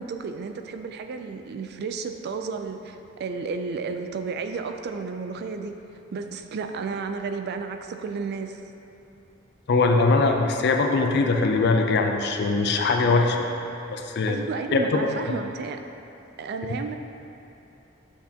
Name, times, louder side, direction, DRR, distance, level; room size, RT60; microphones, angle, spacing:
voice 1, 0.0-5.8 6.1-8.6 14.3-15.8 16.4-17.0, right 4 dB, 55° right, 6 dB, 0.3 m, -32 dB
voice 2, 9.7-13.4 13.9-14.4 14.7-14.8, left 3 dB, 55° left, 4 dB, 0.5 m, -21 dB
6.4 x 5.8 x 2.8 m, 2.9 s
head